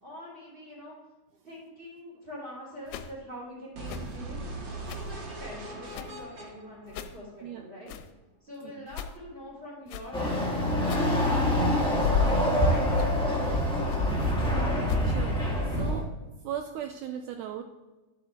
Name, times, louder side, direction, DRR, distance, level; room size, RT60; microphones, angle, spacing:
voice 1, 0.0-1.0 1.4-4.5 5.0-7.9 8.4-14.3, equal, 15° right, -10 dB, 3.0 m, -44 dB
sound 1, 2.9-3.1 3.9-4.2 4.9-5.1 5.9-6.2 6.9-7.2 7.9-8.1 8.9-9.2 9.9-10.1 10.9-11.1 11.9-12.4 12.9-13.2 13.9-14.1 14.9-15.1, left 9 dB, 90° left, 2.3 m, -34 dB
sound 2, 3.7-7.7, right 2 dB, 45° right, 1.7 m, -40 dB
Chatter / Car passing by / Motorcycle, 10.1-16.0, equal, 5° left, 0.4 m, -26 dB
voice 2, 15.0-15.4 15.7-16.1 16.4-17.6, right 9 dB, 80° right, 6 dB, 1.9 m, -37 dB
11.5 x 7.9 x 3.6 m, 1.1 s
omnidirectional pair, 3.9 m